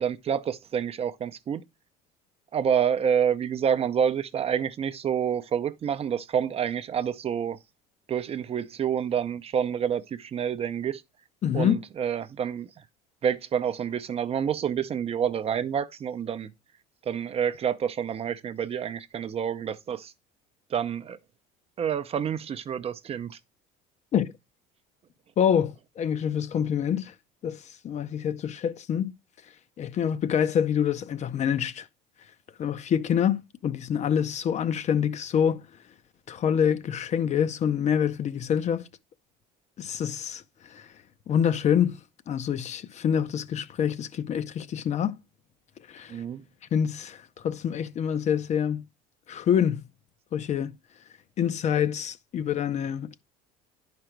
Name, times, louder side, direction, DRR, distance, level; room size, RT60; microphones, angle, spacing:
voice 1, 0.0-1.6 2.5-7.6 8.1-11.0 11.5-12.8 13.2-16.5 17.0-20.1 20.7-21.2 21.8-23.4 46.1-46.4, right 8 dB, 30° right, 0.6 m, -28 dB
voice 2, 11.4-11.8 24.1-24.3 25.4-27.1 27.4-29.1 29.8-31.9 32.6-35.6 36.3-38.9 39.8-40.9 41.3-42.0 42.3-45.2 45.9-46.2 46.7-48.8 49.3-49.9 50.3-50.7 51.4-53.2, left 8 dB, 40° left, 0.6 m, -26 dB
10.5 x 5.1 x 4.5 m
cardioid pair, 120°, 19 cm